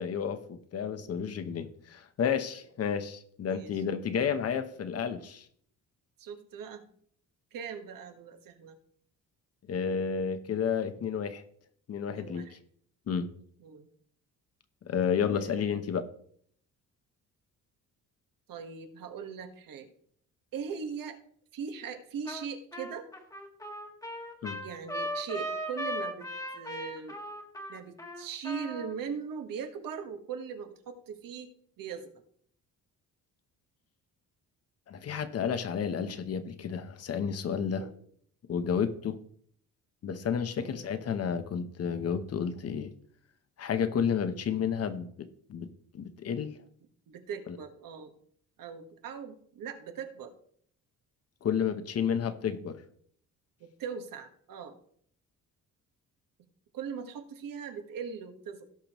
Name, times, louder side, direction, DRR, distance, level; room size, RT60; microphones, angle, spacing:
voice 1, 0.0-5.4 9.7-11.4 11.9-12.5 13.1-13.3 14.9-16.0 24.4-24.6 34.9-37.9 38.5-39.2 40.0-42.9 43.6-46.6 51.4-52.8, left 7 dB, 45° left, 11 dB, 1.0 m, -31 dB
voice 2, 1.0-1.3 3.5-3.8 4.2-4.6 6.2-6.8 7.5-8.8 12.1-12.6 13.6-13.9 15.3-15.8 18.5-19.9 20.5-21.2 21.5-23.1 24.6-26.3 26.5-27.2 27.7-32.1 37.8-37.9 40.6-40.9 44.5-44.6 47.1-48.1 48.6-50.3 53.8-54.8 56.7-58.7, right 6 dB, 75° right, 6 dB, 1.5 m, -40 dB
Trumpet, 22.3-22.5 22.7-28.9, equal, 10° left, 1.4 m, -38 dB
17.0 x 6.7 x 3.1 m, 0.62 s
cardioid pair, 150°, 34 cm